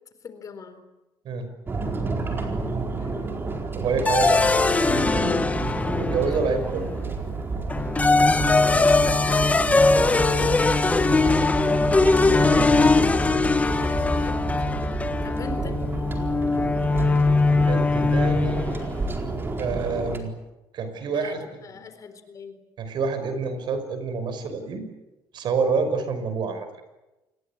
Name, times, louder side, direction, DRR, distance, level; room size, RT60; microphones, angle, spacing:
voice 1, 0.2-0.9 3.0-3.4 6.3-6.6 9.7-11.9 12.8-14.4 15.2-15.8 21.1-22.6, left 6 dB, 35° left, 9 dB, 4.0 m, -42 dB
sound 1, 1.7-20.2, right 3 dB, 25° right, 4.4 m, -30 dB
voice 2, 3.8-4.5 4.8-5.4 5.9-6.8 12.4-13.1 17.7-18.6 19.6-20.3 20.7-21.4 22.8-24.9 25.3-26.8, right 5 dB, 55° right, 9 dB, 5.5 m, -27 dB
sound 2, 4.0-6.6 7.7-18.8, left 3 dB, 15° left, 1.1 m, -21 dB
28.0 x 21.0 x 8.7 m, 1.0 s
cardioid pair, 130°, 9 cm